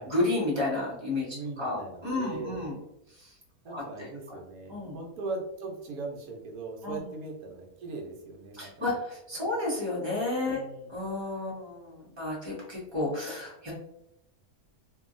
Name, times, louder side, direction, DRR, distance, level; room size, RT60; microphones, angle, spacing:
voice 1, 0.0-2.7 3.2-3.3 3.6-4.1 4.7-5.0 6.8-7.1 8.5-10.6 10.9-13.7, left 2 dB, 20° right, -5 dB, 1.1 m, -32 dB
voice 2, 1.3-2.8 3.6-8.7 10.5-10.9, right 3 dB, 75° right, 0 dB, 1.2 m, -39 dB
2.8 x 2.7 x 2.5 m, 0.82 s
omnidirectional pair, 1.6 m